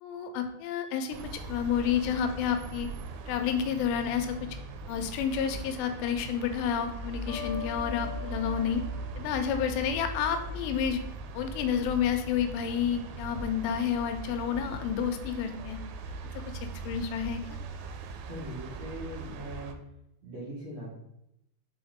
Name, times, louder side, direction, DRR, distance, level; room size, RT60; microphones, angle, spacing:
voice 1, 0.0-2.9 3.3-4.4 4.9-8.8 9.2-11.0 11.3-15.8 16.8-17.4, left 8 dB, 85° left, 7 dB, 3.1 m, -30 dB
sound 1, 1.1-19.7, right 2 dB, 90° right, 3.2 m, -40 dB
sound 2, 7.3-10.1, left 7 dB, 70° left, 1.7 m, -43 dB
voice 2, 18.2-19.7 20.2-21.0, equal, 65° right, -9 dB, 1.7 m, -40 dB
7.7 x 4.2 x 3.6 m, 0.82 s
omnidirectional pair, 5.7 m